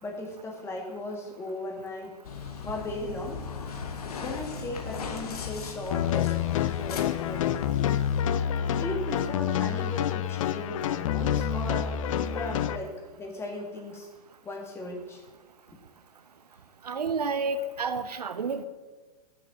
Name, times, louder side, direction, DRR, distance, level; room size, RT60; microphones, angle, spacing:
voice 1, 0.0-2.1 2.6-3.4 4.2-7.8 8.8-11.9 12.3-14.1 14.4-15.2, left 2 dB, 15° left, 1 dB, 1.7 m, -37 dB
sound 1, 2.2-8.2, left 6 dB, 70° left, 1.4 m, -37 dB
sound 2, 5.9-12.8, left 9 dB, 55° left, 0.6 m, -28 dB
voice 2, 16.8-18.6, right 4 dB, 85° right, 11 dB, 0.8 m, -30 dB
7.1 x 6.7 x 7.0 m, 1.3 s
hypercardioid pair, 125°, 20 cm